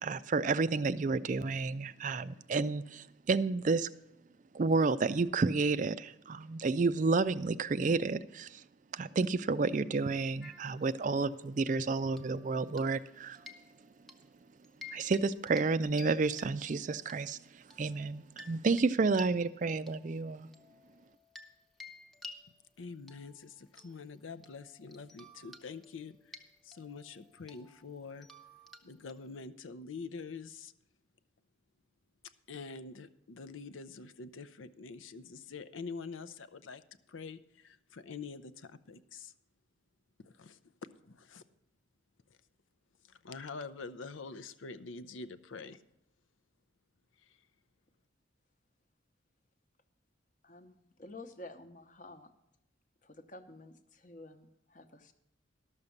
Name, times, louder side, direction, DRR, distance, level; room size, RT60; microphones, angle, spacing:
voice 1, 0.0-3.9 4.5-8.6 8.9-13.4 14.9-20.5, right 4 dB, 40° right, 14 dB, 0.4 m, -31 dB
sound 1, 10.4-11.5 12.1-13.1 13.3-14.2 14.6-15.2 15.5-15.7 16.0-17.2 17.7-21.5 21.8-29.4, left 2 dB, ahead, 0.7 m, -53 dB
voice 2, 22.8-28.3 28.8-30.7 32.5-39.3 40.2-41.4 43.1-45.8 47.2-47.4, left 4 dB, 80° left, 13 dB, 0.6 m, -46 dB
voice 3, 50.4-52.3 53.0-55.1, left 2 dB, 40° left, 9 dB, 0.9 m, -51 dB
12.5 x 6.6 x 7.0 m, 0.86 s
head